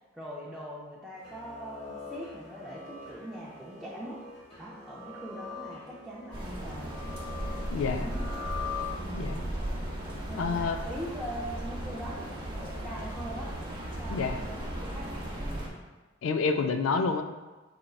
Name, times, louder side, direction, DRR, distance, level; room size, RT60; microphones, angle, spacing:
voice 1, 0.0-4.2 4.6-7.0 7.9-8.3 9.0-9.4 10.3-13.5 14.0-15.7, equal, ahead, -8 dB, 0.5 m, -42 dB
sound 1, 1.2-9.4, left 5 dB, 30° left, 1.1 m, -43 dB
sound 2, 6.3-15.7, right 1 dB, 25° right, 0.8 m, -36 dB
voice 2, 7.7-8.1 9.1-9.4 10.4-10.8 14.1-14.4 16.2-17.2, left 4 dB, 70° left, 7 dB, 0.3 m, -28 dB
5.1 x 4.3 x 2.3 m, 1.2 s
head